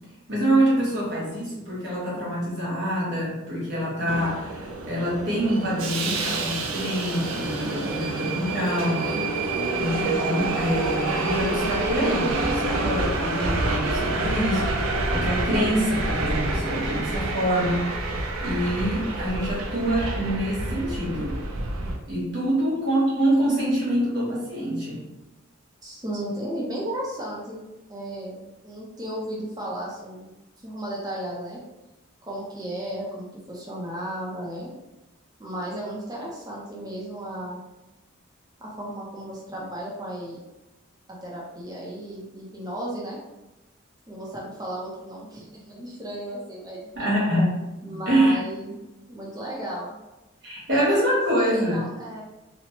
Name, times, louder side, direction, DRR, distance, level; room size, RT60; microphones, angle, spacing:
voice 1, 0.3-9.1 9.8-17.9 18.4-21.4 22.1-25.0 46.9-47.6 48.1-48.4 50.4-51.8, right 1 dB, 55° right, -6 dB, 1.1 m, -25 dB
Subway metro underground, 4.1-22.0, right 2 dB, 85° right, 0.4 m, -28 dB
voice 2, 25.8-30.3 30.6-31.6 32.2-34.7 35.4-37.6 38.6-40.4 41.1-43.2 44.1-46.9 47.8-48.8 49.1-50.0 50.7-52.2, right 1 dB, 20° right, -5 dB, 0.5 m, -34 dB
2.9 x 2.0 x 2.8 m, 1.0 s
head